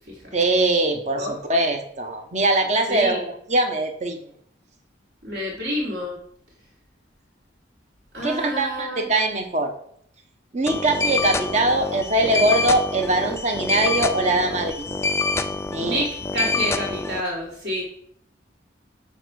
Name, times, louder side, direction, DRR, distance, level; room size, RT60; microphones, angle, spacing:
voice 1, 0.3-3.2 3.5-4.2 8.2-9.7 10.5-14.9 15.7-16.0, right 2 dB, 35° right, 4 dB, 1.0 m, -22 dB
voice 2, 2.9-3.2 5.2-6.2 8.1-9.1 15.8-17.8, equal, 60° right, -3 dB, 3.4 m, -29 dB
sound 1, 10.7-17.2, left 3 dB, 15° left, 0.3 m, -26 dB
9.9 x 3.4 x 6.4 m, 0.66 s
head